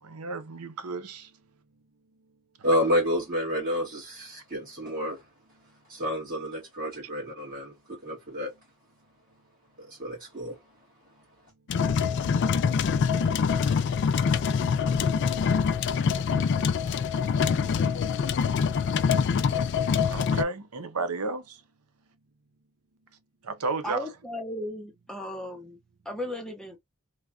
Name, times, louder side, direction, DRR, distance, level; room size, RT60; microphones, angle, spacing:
voice 1, 0.0-1.3 20.1-21.6 23.4-24.1, right 3 dB, 85° right, 0.7 m, -33 dB
voice 2, 2.6-5.2 5.9-8.5 9.8-10.6, equal, 40° right, 1.5 m, -29 dB
sound 1, 11.7-20.4, left 6 dB, 50° left, 0.3 m, -25 dB
voice 3, 23.8-25.8 26.1-26.8, left 1 dB, 5° left, 0.7 m, -35 dB
3.1 x 2.3 x 2.4 m
head